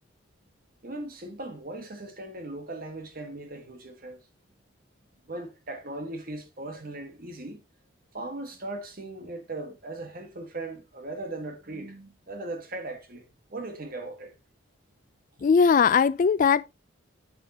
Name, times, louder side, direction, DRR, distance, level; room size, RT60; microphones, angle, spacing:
voice 1, 0.8-4.2 5.3-7.6 8.1-14.3, right 2 dB, 50° right, 1.6 m, -38 dB
voice 2, 15.4-16.7, left 6 dB, 45° left, 0.3 m, -20 dB
7.4 x 7.3 x 2.8 m
head